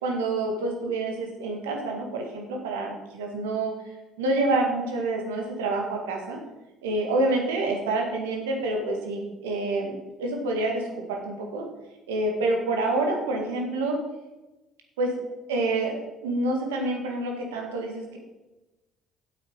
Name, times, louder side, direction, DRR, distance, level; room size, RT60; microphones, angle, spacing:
voice 1, 0.0-6.4 6.8-9.9 10.2-11.7 12.1-14.0 15.0-15.1 15.5-18.2, right 2 dB, 85° right, 2 dB, 2.0 m, -27 dB
8.8 x 8.1 x 5.4 m, 1.0 s
hypercardioid pair, 55°, 0 cm